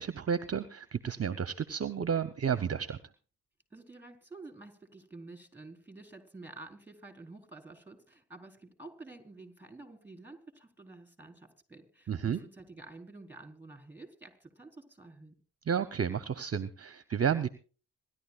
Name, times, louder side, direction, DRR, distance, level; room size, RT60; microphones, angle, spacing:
voice 1, 0.0-3.0 12.1-12.4 15.7-17.5, right 7 dB, 40° right, 12 dB, 0.8 m, -31 dB
voice 2, 3.7-15.4, right 3 dB, 5° right, 5 dB, 4.2 m, -50 dB
26.0 x 12.0 x 2.4 m, 0.37 s
supercardioid pair, 45°, 40 cm